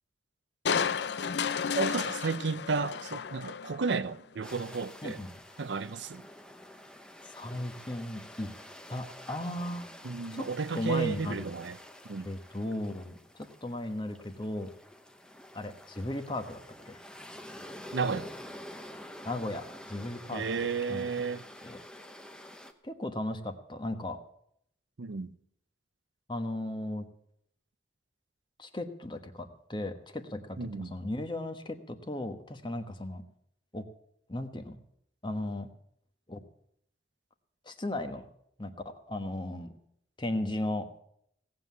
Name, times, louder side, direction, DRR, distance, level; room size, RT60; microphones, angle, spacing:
Crushing, 0.6-4.0 4.5-4.6, left 6 dB, 65° left, 0.5 m, -32 dB
voice 1, 1.7-5.2 5.6-6.3 10.0-11.8 12.1-12.3 17.9-18.3 20.3-21.4 25.0-25.3 30.6-30.9, right 4 dB, 75° right, 0.6 m, -32 dB
sound 1, 4.4-22.7, left 1 dB, 5° left, 0.9 m, -48 dB
voice 2, 7.4-8.5 8.9-9.9 10.3-10.5 10.7-11.5 12.2-14.7 15.5-17.0 19.2-20.4 20.9-21.1 21.6-21.8 22.8-24.2 26.3-27.0 28.6-33.2 33.7-33.8 34.3-34.8 35.2-35.7 36.3-36.4 37.6-38.3 38.6-39.7 40.2-40.9, left 1 dB, 25° left, 1.2 m, -36 dB
17.5 x 7.6 x 8.2 m
head